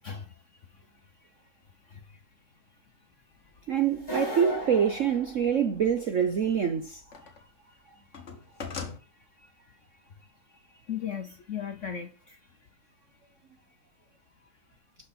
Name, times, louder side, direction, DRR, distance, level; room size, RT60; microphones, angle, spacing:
voice 1, 0.0-0.8 1.2-1.3 1.8-2.2 3.3-3.6 7.2-8.2 9.0-12.7, left 8 dB, 55° left, 0.8 m, -41 dB
voice 2, 3.7-7.0, right 7 dB, 60° right, 0.8 m, -25 dB
sound 1, 4.0-6.0, right 1 dB, 10° left, 3.9 m, -36 dB
sound 2, 4.4-4.5 6.2-7.5 7.8-9.0, left 5 dB, 40° left, 1.7 m, -40 dB
12.5 x 6.0 x 4.2 m
omnidirectional pair, 2.2 m